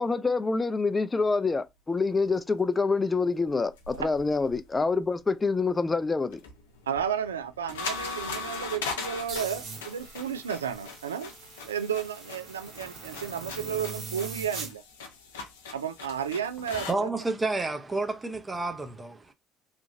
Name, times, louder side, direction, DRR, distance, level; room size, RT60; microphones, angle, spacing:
voice 1, 0.0-6.4, left 4 dB, 25° left, 0.4 m, -26 dB
sound 1, 3.6-5.0 6.3-16.9, left 4 dB, 85° left, 0.6 m, -40 dB
voice 2, 6.9-11.3 11.6-14.8 15.7-17.1, right 8 dB, 90° right, 0.3 m, -32 dB
sound 2, 9.3-14.7, right 4 dB, 60° right, 1.4 m, -42 dB
voice 3, 16.9-19.3, right 3 dB, 25° right, 0.6 m, -30 dB
3.0 x 2.4 x 2.5 m
hypercardioid pair, 55°, 0 cm